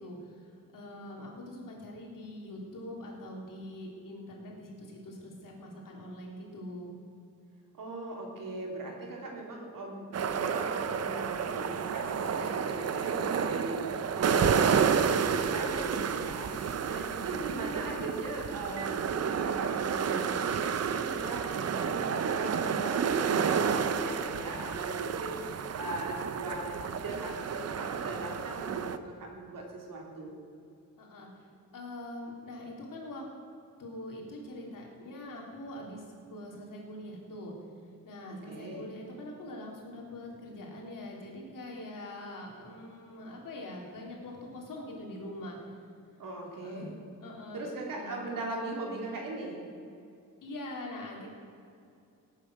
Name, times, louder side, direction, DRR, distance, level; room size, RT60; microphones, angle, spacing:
voice 1, 0.0-6.9 16.8-17.5 31.0-33.2 33.8-36.0 36.3-37.5 38.0-45.6 46.6-46.9 47.2-47.6 47.9-48.2 50.4-51.3, left 1 dB, 70° left, -1 dB, 3.6 m, -43 dB
voice 2, 7.7-30.3 38.3-38.9 46.2-46.9 47.5-49.6, right 2 dB, 70° right, 0 dB, 3.4 m, -39 dB
sound 1, 10.1-29.0, right 6 dB, 45° right, 0.7 m, -30 dB
17.5 x 9.2 x 6.4 m, 2.5 s
wide cardioid pair, 140°, 34 cm